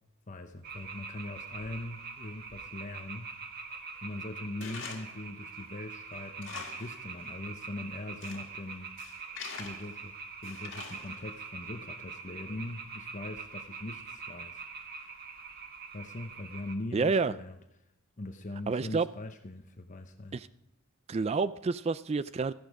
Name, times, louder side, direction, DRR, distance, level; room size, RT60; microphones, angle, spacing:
voice 1, 0.3-3.7 4.0-8.9 9.6-10.1 10.4-15.2 15.9-17.5 18.2-20.4, left 2 dB, 40° left, 6 dB, 0.9 m, -41 dB
sound 1, 0.6-16.7, right 5 dB, 50° right, 1.6 m, -44 dB
Tools, 4.6-5.2 5.6-5.7 6.2-7.0 7.3-7.4 8.0-8.5 9.0-10.0 10.4-11.3, left 5 dB, 60° left, 2.0 m, -44 dB
voice 2, 16.9-17.3 18.7-19.1 20.3-20.4 21.1-22.5, right 4 dB, 30° right, 15 dB, 0.4 m, -28 dB
14.0 x 11.5 x 4.8 m, 0.83 s
head